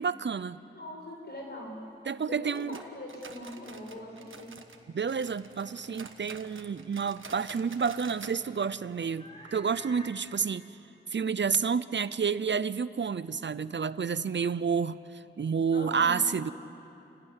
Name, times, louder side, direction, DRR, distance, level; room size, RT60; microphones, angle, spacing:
voice 1, 0.0-0.6 2.1-2.8 4.9-10.7 11.1-16.5, right 6 dB, 65° right, 16 dB, 0.6 m, -30 dB
voice 2, 0.7-1.8 2.2-4.5 15.7-16.5, left 1 dB, 55° left, 0 dB, 6.6 m, -42 dB
sound 1, 2.5-4.8 5.1-8.4 8.7-8.8 9.2-9.3 9.8-9.9, right 4 dB, 85° right, 1.4 m, -48 dB
sound 2, 3.5-10.1, equal, 35° left, 4.9 m, -55 dB
28.5 x 17.5 x 9.8 m, 2.8 s
wide cardioid pair, 70°, 20 cm